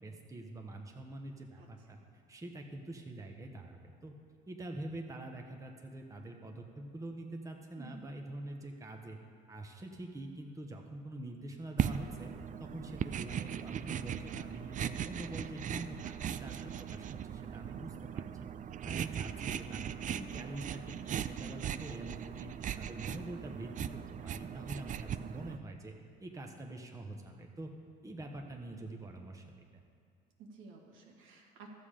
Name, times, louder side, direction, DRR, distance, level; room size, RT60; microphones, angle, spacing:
voice 1, 0.0-2.0 2.3-4.1 4.5-9.2 9.5-12.3 12.6-18.5 18.8-22.5 22.8-25.9 26.2-27.7 28.0-29.8, right 1 dB, 15° right, 2 dB, 1.1 m, -45 dB
voice 2, 1.6-2.0 7.8-8.2 30.4-31.7, right 4 dB, 75° right, 0 dB, 1.9 m, -54 dB
sound 1, 11.8-25.6, right 9 dB, 40° right, 0.4 m, -39 dB
12.5 x 7.3 x 5.1 m, 2.2 s
supercardioid pair, 80°, 21 cm